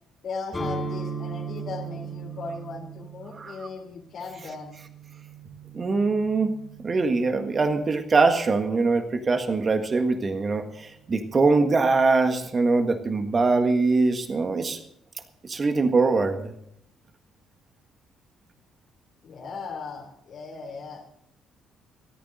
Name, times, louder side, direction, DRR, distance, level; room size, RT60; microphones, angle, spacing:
voice 1, 0.2-4.7 19.2-21.0, left 4 dB, 50° left, 2 dB, 3.1 m, -37 dB
sound 1, 0.5-8.3, right 4 dB, 25° left, 3.9 m, -38 dB
voice 2, 5.7-6.5 6.8-14.8 15.4-16.5, right 3 dB, 35° right, 7 dB, 1.6 m, -22 dB
28.0 x 14.0 x 2.6 m, 0.73 s
figure-of-eight pair, 45°, 0 cm